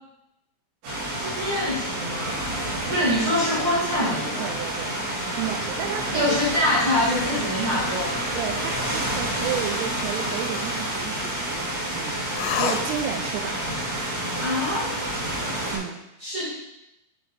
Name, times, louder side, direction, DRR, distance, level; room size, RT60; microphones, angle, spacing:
sound 1, 0.8-15.8, right 1 dB, 70° right, 5.5 m, -29 dB
voice 1, 1.1-2.4 2.9-4.5 6.1-8.2 14.4-15.0 16.2-16.5, left 1 dB, 55° right, -7 dB, 1.5 m, -25 dB
voice 2, 2.7-3.1 4.4-5.0 5.3-6.4 8.4-12.2 12.5-13.6 15.7-16.0, right 10 dB, 90° right, 4 dB, 3.2 m, -32 dB
sound 2, 7.8-11.2 12.3-13.4, left 8 dB, 85° left, 3.1 m, -34 dB
10.5 x 4.2 x 4.2 m, 0.88 s
omnidirectional pair, 5.7 m